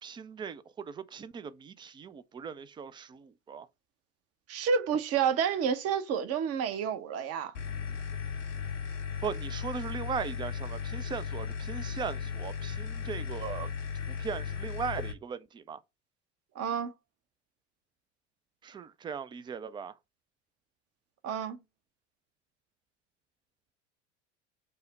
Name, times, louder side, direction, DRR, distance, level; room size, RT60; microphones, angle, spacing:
voice 1, 0.0-3.7 9.2-13.7 14.1-15.8 18.6-20.0, right 6 dB, 15° right, 0.3 m, -38 dB
voice 2, 4.5-7.5 16.5-16.9 21.2-21.6, right 7 dB, 40° right, 0.8 m, -29 dB
sound 1, 7.5-15.1, left 6 dB, 85° left, 1.0 m, -36 dB
5.6 x 2.1 x 4.0 m
hypercardioid pair, 75°, 36 cm